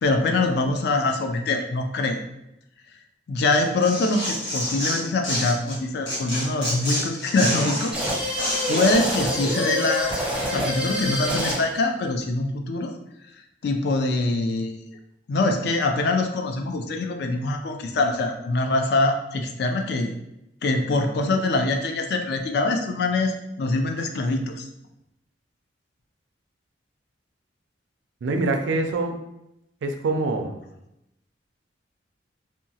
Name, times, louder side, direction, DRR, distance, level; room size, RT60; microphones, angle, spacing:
voice 1, 0.0-2.2 3.3-8.0 8.3-10.2 10.5-12.9 13.6-14.8 15.3-20.1 20.6-24.7, left 2 dB, 60° left, 4 dB, 0.3 m, -24 dB
Tearing, 3.5-5.8 6.1-9.2, equal, 75° left, 1.2 m, -28 dB
sound 1, 7.9-11.8, equal, 5° right, 0.5 m, -27 dB
voice 2, 28.2-29.1 29.8-30.6, right 3 dB, 75° right, 5 dB, 0.4 m, -25 dB
2.8 x 2.2 x 2.7 m, 0.85 s
head